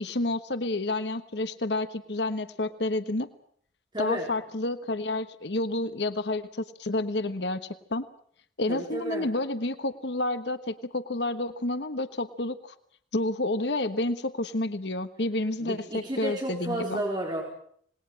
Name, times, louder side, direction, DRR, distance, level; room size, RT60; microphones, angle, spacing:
voice 1, 0.0-3.3 4.0-8.0 8.6-12.7 13.1-17.0, left 2 dB, 65° left, 11 dB, 1.3 m, -30 dB
voice 2, 3.9-4.3 8.7-9.3 15.6-17.4, right 1 dB, 25° right, 0 dB, 4.3 m, -32 dB
27.0 x 20.0 x 7.7 m, 0.63 s
head